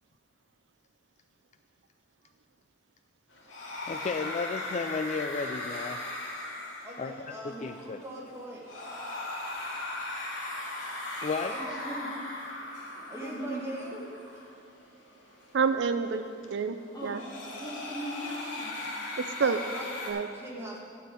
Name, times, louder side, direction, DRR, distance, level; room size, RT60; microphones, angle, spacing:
sound 1, 3.3-20.1, left 2 dB, 75° left, 2.2 m, -39 dB
voice 1, 3.9-6.0 7.0-8.0 11.2-11.6, left 4 dB, 35° left, 7 dB, 0.3 m, -33 dB
voice 2, 6.8-8.7 11.4-11.7 13.1-14.0 19.4-20.8, right 1 dB, 15° right, -4 dB, 1.6 m, -42 dB
voice 3, 11.6-12.1 13.0-13.6 16.9-17.2 17.6-18.8, equal, 20° left, -5 dB, 2.1 m, -39 dB
voice 4, 15.5-16.8 17.0-17.2 19.2-19.6 20.1-20.3, right 5 dB, 70° right, 10 dB, 0.5 m, -28 dB
11.5 x 5.0 x 7.6 m, 2.4 s
head